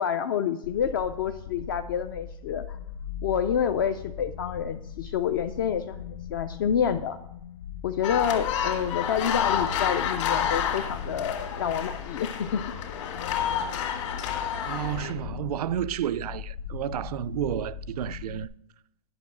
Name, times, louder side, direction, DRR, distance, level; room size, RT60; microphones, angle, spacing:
voice 1, 0.0-2.8 3.2-7.2 7.8-12.6, left 8 dB, 35° left, 0.4 m, -28 dB
sound 1, 0.6-18.4, left 8 dB, 90° left, 0.6 m, -40 dB
sound 2, 8.0-15.1, left 8 dB, 55° left, 1.8 m, -29 dB
voice 2, 14.6-18.5, right 11 dB, 85° right, 0.4 m, -31 dB
10.5 x 6.1 x 5.9 m
supercardioid pair, 175°, 19 cm